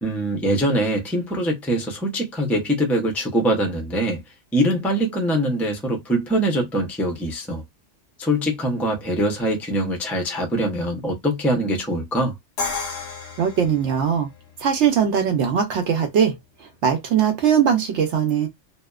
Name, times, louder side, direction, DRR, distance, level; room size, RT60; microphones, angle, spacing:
voice 1, 0.0-4.2 4.5-7.6 8.2-12.3, right 1 dB, ahead, 0.3 m, -23 dB
Crash cymbal, 12.6-14.5, left 4 dB, 90° left, 1.1 m, -31 dB
voice 2, 13.4-14.3 14.6-18.5, right 8 dB, 75° right, 0.8 m, -20 dB
2.6 x 2.1 x 2.2 m
omnidirectional pair, 1.2 m